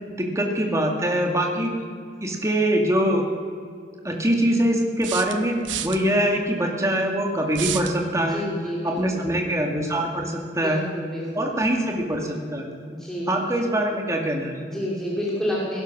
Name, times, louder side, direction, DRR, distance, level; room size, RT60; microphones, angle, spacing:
voice 1, 0.1-1.7 2.2-3.2 4.0-5.6 5.8-8.4 8.8-10.8 11.4-12.7 13.3-14.5, right 1 dB, 15° right, 2 dB, 2.0 m, -23 dB
sound 1, 2.9-3.0 5.0-6.0 7.5-8.0, right 10 dB, 80° right, 0.9 m, -30 dB
voice 2, 8.3-9.2 10.5-11.5 12.9-13.5 14.6-15.8, equal, 5° left, -6 dB, 2.9 m, -30 dB
18.0 x 11.0 x 6.1 m, 2.2 s
head